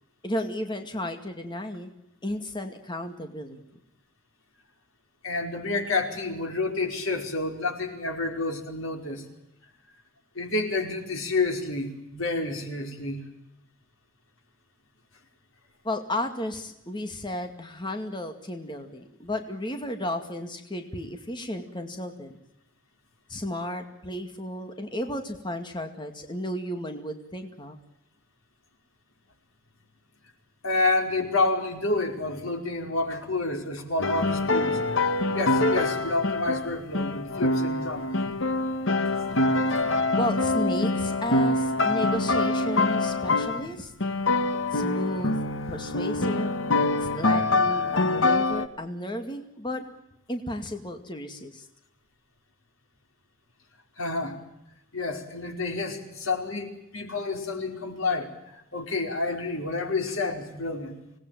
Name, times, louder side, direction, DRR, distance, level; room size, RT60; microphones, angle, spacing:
voice 1, 0.2-1.9 2.2-3.6 15.8-22.4 23.3-27.8 40.2-43.9 44.7-45.3 45.7-46.6 47.0-49.8 50.3-51.7, left 1 dB, 20° left, 6 dB, 2.2 m, -33 dB
voice 2, 5.2-9.2 10.3-13.2 30.6-35.1 35.3-38.1 39.7-39.8 54.0-54.4 54.9-60.9, left 3 dB, 85° left, 4 dB, 4.9 m, -29 dB
sound 1, 34.0-43.7 44.0-48.7, left 2 dB, 65° left, 1.4 m, -25 dB
26.0 x 19.0 x 9.2 m, 0.84 s
head